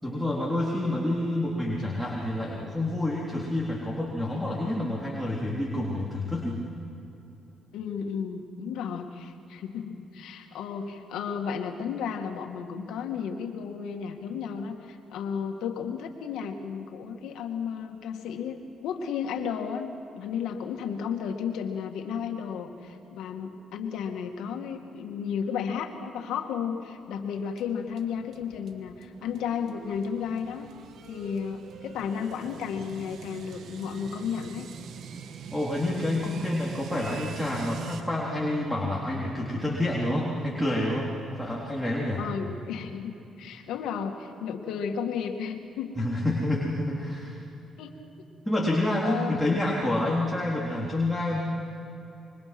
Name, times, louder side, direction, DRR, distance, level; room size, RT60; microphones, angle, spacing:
voice 1, 0.0-6.6 35.5-42.2 46.0-47.4 48.5-51.4, left 1 dB, 5° left, -5 dB, 3.8 m, -28 dB
voice 2, 7.7-30.7 31.1-34.7 42.2-46.2 47.8-48.3 49.0-49.6, left 7 dB, 85° left, 4 dB, 2.3 m, -33 dB
sound 1, 27.1-38.0, right 6 dB, 70° right, 1.4 m, -43 dB
25.5 x 23.5 x 6.2 m, 2.8 s
cardioid pair, 90°, 0 cm